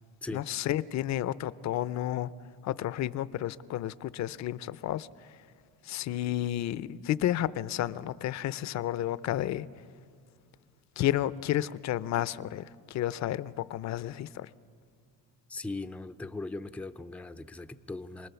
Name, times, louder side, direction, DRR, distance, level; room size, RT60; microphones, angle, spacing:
voice 1, 0.3-2.3 2.6-5.1 5.8-9.7 11.0-14.5, left 12 dB, 50° left, 0.6 m, -31 dB
voice 2, 15.5-18.3, left 2 dB, 5° left, 0.5 m, -39 dB
27.5 x 20.0 x 7.0 m
cardioid pair, 130°, 35 cm